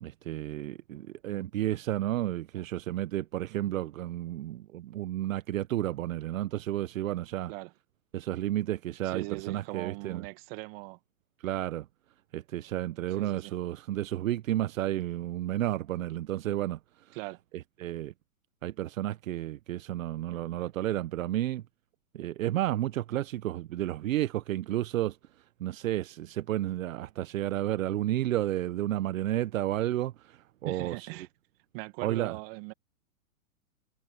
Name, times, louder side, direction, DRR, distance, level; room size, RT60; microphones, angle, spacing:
voice 1, 0.0-7.5 8.1-10.2 11.4-11.9 12.3-17.2 17.8-18.1 18.6-21.6 22.1-25.2 25.6-31.1 32.0-32.4, right 13 dB, 65° right, 1.0 m, -32 dB
voice 2, 9.0-11.0 13.1-13.5 17.1-17.4 30.6-31.3 31.7-32.7, right 26 dB, 40° right, 2.1 m, -40 dB
hypercardioid pair, 130°, 43 cm